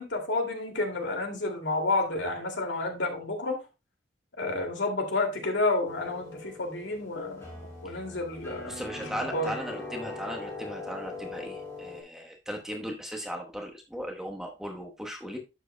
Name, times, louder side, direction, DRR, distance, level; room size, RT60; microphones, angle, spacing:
voice 1, 0.0-3.6 4.4-9.0 9.3-9.5, left 2 dB, 75° left, 3 dB, 2.4 m, -30 dB
sound 1, 5.8-12.0, left 3 dB, 15° left, 3.5 m, -41 dB
voice 2, 8.6-15.4, equal, 5° right, 1 dB, 1.1 m, -37 dB
11.5 x 7.7 x 2.2 m, 0.25 s
head